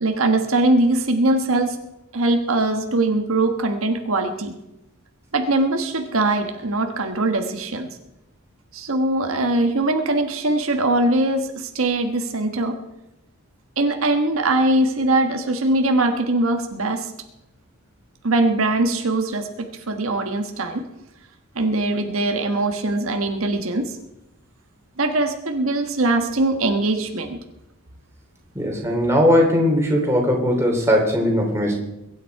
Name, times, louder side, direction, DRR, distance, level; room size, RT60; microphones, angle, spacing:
voice 1, 0.0-1.8 2.1-4.5 5.3-7.9 8.7-12.8 13.8-17.1 18.2-20.8 21.5-24.0 25.0-27.4, right 2 dB, 75° right, 5 dB, 1.3 m, -21 dB
voice 2, 28.5-31.7, equal, 10° right, 0 dB, 3.0 m, -19 dB
22.5 x 9.3 x 4.7 m, 0.92 s
head